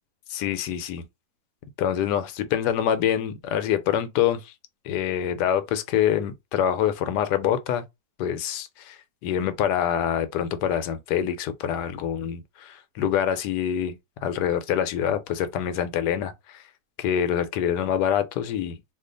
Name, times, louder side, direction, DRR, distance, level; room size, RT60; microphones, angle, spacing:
voice 1, 0.3-1.1 1.8-4.5 4.8-7.8 8.2-16.6 17.0-18.8, left 9 dB, 90° left, 1.2 m, -25 dB
2.6 x 2.4 x 3.8 m
omnidirectional pair, 1.7 m